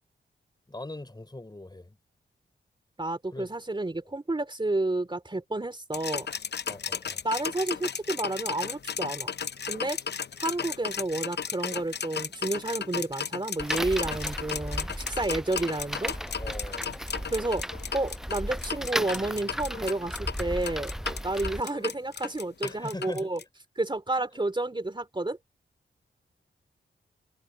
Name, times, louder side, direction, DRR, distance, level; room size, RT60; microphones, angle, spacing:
voice 1, 0.7-2.0 3.3-3.6 6.7-7.2 16.0-16.9 22.6-23.3, left 2 dB, 20° left, 4.7 m, -41 dB
voice 2, 3.0-6.3 7.2-9.3 9.7-10.0 10.4-16.1 17.3-23.4 23.7-25.4, right 2 dB, 25° right, 3.2 m, -30 dB
sound 1, 5.9-23.4, left 7 dB, 55° left, 0.7 m, -35 dB
sound 2, 13.6-21.6, equal, ahead, 6.7 m, -35 dB
cardioid pair, 65°, 20 cm